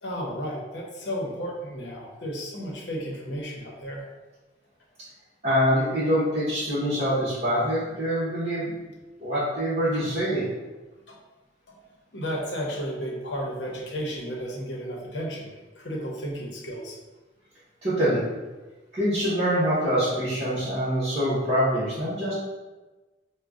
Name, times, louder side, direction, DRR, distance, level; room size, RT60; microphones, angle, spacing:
voice 1, 0.0-4.1 9.9-10.0 11.1-11.2 11.7-11.8 12.1-17.0, equal, 80° left, -2 dB, 0.8 m, -33 dB
voice 2, 5.4-8.8 9.2-10.5 17.8-18.2 18.9-22.3, equal, 35° right, -13 dB, 1.0 m, -25 dB
5.0 x 2.2 x 2.4 m, 1.2 s
head